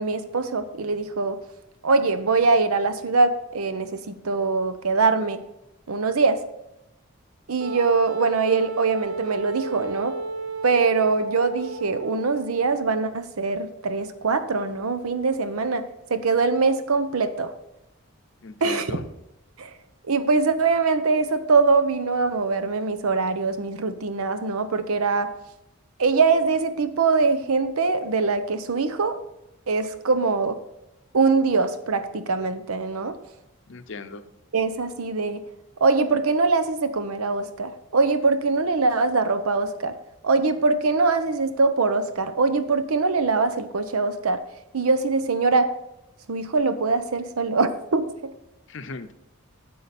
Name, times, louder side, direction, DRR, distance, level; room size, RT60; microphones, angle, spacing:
voice 1, 0.0-1.4 1.8-5.4 5.9-6.4 7.5-10.1 10.6-17.5 18.6-18.9 19.6-19.7 20.1-25.3 26.0-29.2 29.7-30.6 31.1-33.2 34.5-35.4 35.8-40.0 40.2-44.4 44.7-45.7 46.3-48.0, right 4 dB, 85° right, 11 dB, 0.8 m, -23 dB
Wind instrument woodwind instrument, 7.6-12.7, right 3 dB, 60° right, 0.9 m, -32 dB
voice 2, 18.4-19.1 33.7-34.2 48.7-49.1, left 3 dB, 55° left, 10 dB, 0.6 m, -37 dB
9.5 x 7.5 x 4.2 m, 0.89 s
head